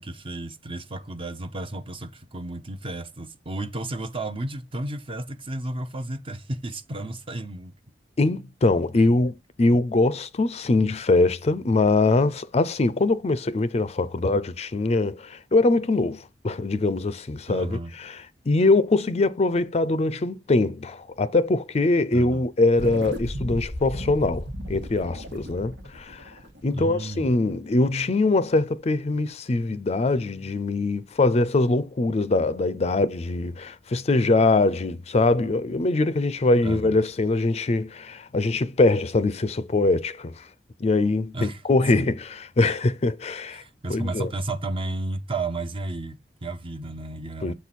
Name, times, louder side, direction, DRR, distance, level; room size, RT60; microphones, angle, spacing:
voice 1, 0.0-7.7 17.5-17.9 22.1-22.5 26.7-27.3 36.6-37.0 41.3-41.6 41.9-42.1 43.5-47.5, right 2 dB, 30° right, 0.7 m, -33 dB
voice 2, 8.2-18.2 18.5-26.3 26.6-40.4 40.8-43.6 43.9-44.3 47.4-47.5, left 2 dB, 35° left, 0.5 m, -23 dB
sound 1, 22.7-27.4, equal, 85° right, 1.6 m, -35 dB
7.3 x 4.6 x 4.1 m
head